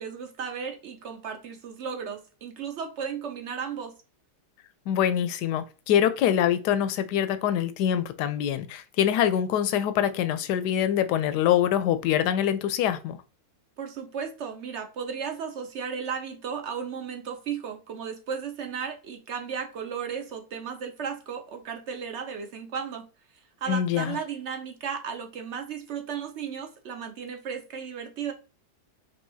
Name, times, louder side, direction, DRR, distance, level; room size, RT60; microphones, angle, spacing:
voice 1, 0.0-3.9 13.8-23.0 23.6-28.3, right 6 dB, 65° right, 0.7 m, -35 dB
voice 2, 4.9-13.2 23.7-24.2, left 10 dB, 80° left, 1.1 m, -24 dB
5.4 x 2.8 x 2.7 m
omnidirectional pair, 1.8 m